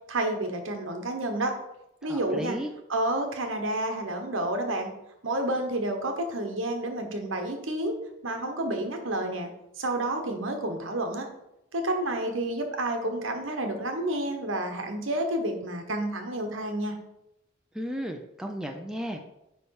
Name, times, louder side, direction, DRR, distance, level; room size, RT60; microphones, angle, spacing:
voice 1, 0.1-1.6 2.0-2.6 2.9-4.9 5.2-8.0 8.2-9.5 9.8-11.3 11.7-17.0, right 1 dB, 80° right, 4 dB, 1.2 m, -30 dB
voice 2, 2.1-2.7 17.7-19.2, equal, 5° right, 3 dB, 0.5 m, -34 dB
9.5 x 3.3 x 4.7 m, 0.89 s
head